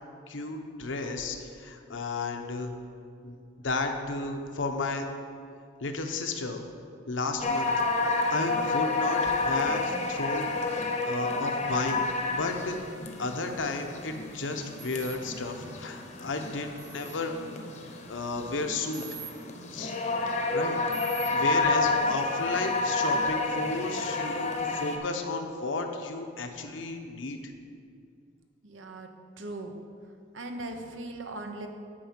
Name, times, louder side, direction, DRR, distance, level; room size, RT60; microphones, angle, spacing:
voice 1, 0.3-2.7 3.2-3.4 3.6-5.1 5.8-6.6 7.1-7.7 8.3-12.0 12.3-12.8 13.2-17.4 18.1-19.0 19.7-19.9 20.5-20.8 21.3-27.5, left 3 dB, 75° left, 4 dB, 0.9 m, -33 dB
sound 1, 7.4-25.0, left 3 dB, 40° left, 0.8 m, -30 dB
sound 2, 14.8-15.2 16.8-17.2 18.9-19.3 20.9-21.3, right 9 dB, 50° right, 1.6 m, -43 dB
voice 2, 28.6-29.1 29.4-29.7 30.3-31.7, right 2 dB, 80° right, 5 dB, 0.9 m, -39 dB
8.9 x 4.7 x 7.4 m, 2.3 s
head